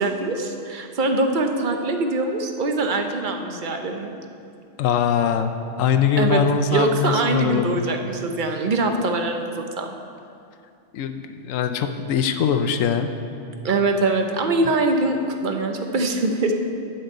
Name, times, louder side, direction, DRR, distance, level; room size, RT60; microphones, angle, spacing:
voice 1, 0.0-4.1 6.2-6.4 6.7-9.9 13.6-16.5, right 2 dB, 45° right, 4 dB, 0.8 m, -23 dB
voice 2, 4.8-5.5 5.8-7.8 10.9-13.1, left 7 dB, 90° left, 7 dB, 1.0 m, -22 dB
8.8 x 5.5 x 7.9 m, 2.4 s
omnidirectional pair, 1.3 m